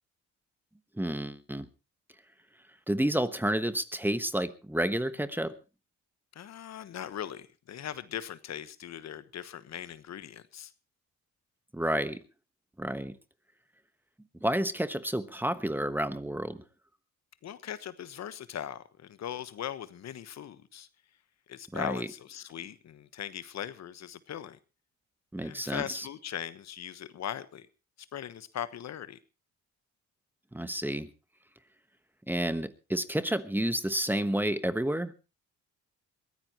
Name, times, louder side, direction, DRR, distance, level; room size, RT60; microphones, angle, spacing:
voice 1, 1.0-1.7 2.9-5.6 11.7-12.2 12.8-13.1 14.4-16.6 21.7-22.1 25.3-26.1 30.5-31.1 32.3-35.1, right 1 dB, 5° right, 12 dB, 1.2 m, -30 dB
voice 2, 6.3-10.7 17.4-20.9 21.5-24.6 25.4-27.7 28.1-29.2, left 10 dB, 60° left, 14 dB, 1.2 m, -39 dB
22.0 x 15.5 x 3.0 m, 0.30 s
cardioid pair, 90°, 30 cm